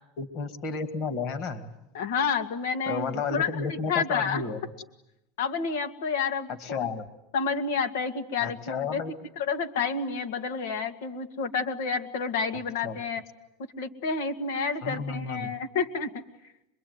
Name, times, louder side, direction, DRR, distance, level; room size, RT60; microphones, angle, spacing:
voice 1, 0.2-1.7 2.9-4.6 6.5-7.0 8.4-9.1 12.8-13.0 14.8-15.5, left 5 dB, 40° left, 10 dB, 2.1 m, -32 dB
voice 2, 1.9-4.4 5.4-6.9 7.3-9.0 9.4-13.2 13.8-16.2, left 5 dB, 85° left, 8 dB, 2.2 m, -29 dB
25.5 x 23.0 x 9.6 m, 0.86 s
supercardioid pair, 170°, 0 cm